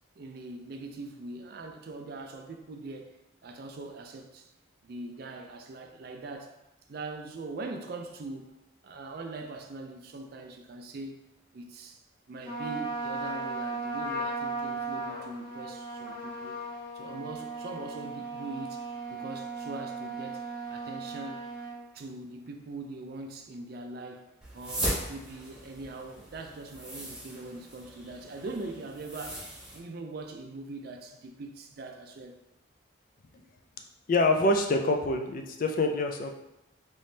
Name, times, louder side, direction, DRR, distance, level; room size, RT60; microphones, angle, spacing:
voice 1, 0.2-3.2 3.4-4.5 4.8-6.5 6.9-8.5 8.8-11.2 11.5-16.6 16.9-18.8 19.1-20.4 20.7-21.5 21.9-24.3 24.5-32.4, right 2 dB, 50° right, 0.4 m, -42 dB
Trumpet, 12.4-21.8, right 3 dB, 25° left, 1.0 m, -36 dB
sound 1, 24.4-29.8, right 1 dB, 5° right, 0.6 m, -38 dB
voice 2, 34.1-36.3, left 2 dB, 45° left, 0.3 m, -25 dB
3.4 x 3.0 x 2.7 m
head